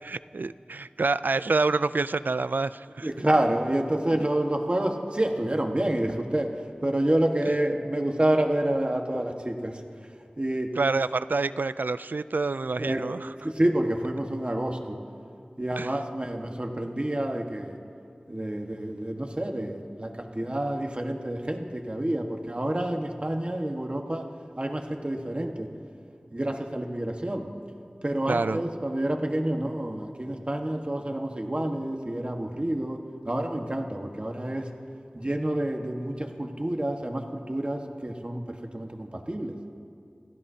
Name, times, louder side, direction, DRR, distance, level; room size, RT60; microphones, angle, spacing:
voice 1, 0.0-3.1 10.8-13.3 15.8-15.9 28.3-28.6, right 3 dB, 85° right, 15 dB, 0.3 m, -27 dB
voice 2, 3.0-9.8 10.4-10.7 12.8-13.1 13.4-15.0 15.6-17.8 18.3-25.7 26.3-27.5 28.0-33.0 33.2-34.7 35.1-39.6, right 1 dB, 35° right, 3 dB, 1.4 m, -28 dB
29.0 x 15.0 x 2.8 m, 2.4 s
wide cardioid pair, 45°, 3 cm